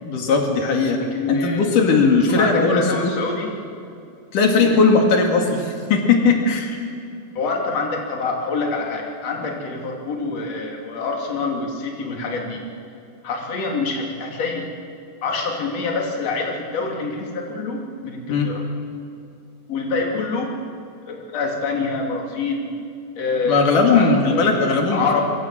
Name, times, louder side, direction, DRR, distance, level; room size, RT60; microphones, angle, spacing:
voice 1, 0.0-1.0 1.3-3.1 4.3-6.8 18.3-18.5 23.5-25.2, left 4 dB, 85° left, 2 dB, 3.8 m, -18 dB
voice 2, 1.0-1.7 2.2-3.5 4.6-4.8 7.4-12.6 13.2-14.6 15.2-18.6 19.7-20.5 21.1-22.7 23.2-24.7 24.9-25.2, left 4 dB, 55° left, 0 dB, 4.0 m, -26 dB
25.0 x 24.0 x 7.5 m, 2.6 s
omnidirectional pair, 3.6 m